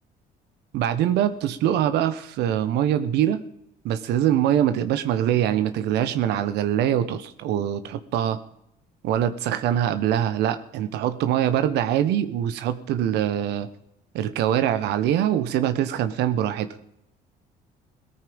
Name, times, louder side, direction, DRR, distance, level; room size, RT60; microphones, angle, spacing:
voice 1, 0.7-3.4 3.8-8.4 9.0-13.7 14.1-16.7, right 10 dB, 85° right, 11 dB, 1.3 m, -23 dB
18.0 x 13.5 x 5.4 m, 0.76 s
cardioid pair, 110°, 17 cm